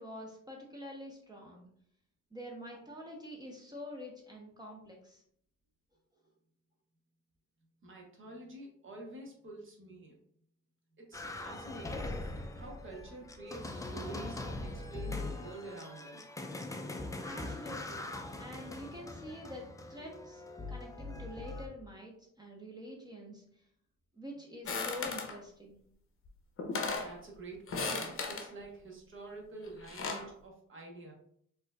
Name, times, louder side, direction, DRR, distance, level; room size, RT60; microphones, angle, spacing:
voice 1, 0.0-1.7 2.3-5.2 17.2-20.4 20.7-23.4 24.1-25.8, left 1 dB, 15° right, 0 dB, 0.7 m, -46 dB
voice 2, 7.8-10.2 11.0-12.2 12.5-16.2 27.0-31.1, right 2 dB, 40° right, 0 dB, 1.0 m, -48 dB
sound 1, 11.1-21.7, left 2 dB, 10° left, 0.4 m, -42 dB
sound 2, 24.7-25.4 26.3-26.4 26.6-27.1 27.7-28.5 29.6-30.3, left 4 dB, 45° left, 0.7 m, -36 dB
4.2 x 2.7 x 2.3 m, 0.66 s
cardioid pair, 90°, 30 cm